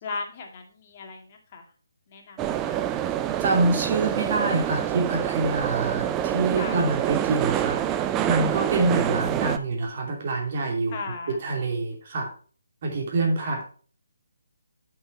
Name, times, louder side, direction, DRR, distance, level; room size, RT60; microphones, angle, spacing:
voice 1, 0.0-1.7 2.1-2.8 6.6-6.8 10.9-11.4 13.4-13.6, left 4 dB, 35° left, 3 dB, 2.0 m, -37 dB
sound 1, 2.4-9.6, right 11 dB, 15° right, 0.5 m, -26 dB
voice 2, 3.4-7.8 8.3-11.0 11.3-12.3 12.8-13.6, right 3 dB, 45° right, 2 dB, 2.8 m, -26 dB
8.2 x 6.1 x 4.4 m, 0.41 s
figure-of-eight pair, 145°, 0 cm